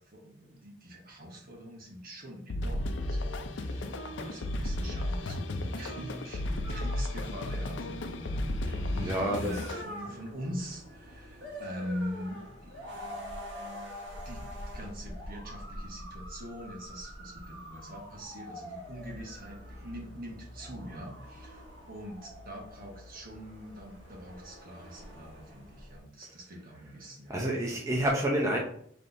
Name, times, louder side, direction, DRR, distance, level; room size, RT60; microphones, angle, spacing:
voice 1, 0.0-13.2 13.6-13.9 14.2-27.8, equal, 50° right, 0 dB, 1.3 m, -43 dB
sound 1, 2.5-9.8, left 1 dB, 80° left, 0.5 m, -34 dB
sound 2, 6.6-26.0, equal, 70° right, 1.5 m, -45 dB
voice 2, 8.9-9.6 27.3-28.6, right 1 dB, 15° right, -2 dB, 0.6 m, -29 dB
5.9 x 3.3 x 2.6 m, 0.65 s
head